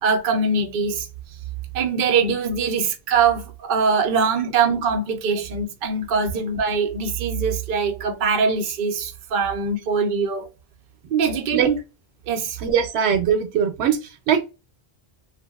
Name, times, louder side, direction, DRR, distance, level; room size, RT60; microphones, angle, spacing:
voice 1, 0.0-1.1 1.7-10.5 11.1-11.8 12.3-12.6, right 5 dB, 60° right, 0.7 m, -22 dB
voice 2, 12.6-14.4, right 8 dB, 90° right, 0.9 m, -21 dB
2.7 x 2.5 x 2.2 m
omnidirectional pair, 1.1 m